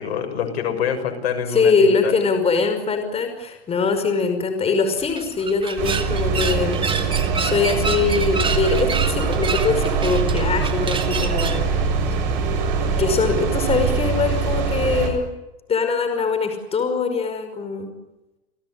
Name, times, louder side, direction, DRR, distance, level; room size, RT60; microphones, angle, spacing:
voice 1, 0.0-2.1, left 7 dB, 75° left, 7 dB, 6.7 m, -26 dB
voice 2, 1.5-11.7 13.0-15.3 15.7-17.9, left 4 dB, 20° left, 7 dB, 5.6 m, -22 dB
sound 1, 5.0-11.7, right 5 dB, 15° right, 2.6 m, -29 dB
sound 2, 5.8-15.1, right 5 dB, 60° right, 7.1 m, -23 dB
29.5 x 18.0 x 9.8 m, 1.0 s
hypercardioid pair, 130°, 31 cm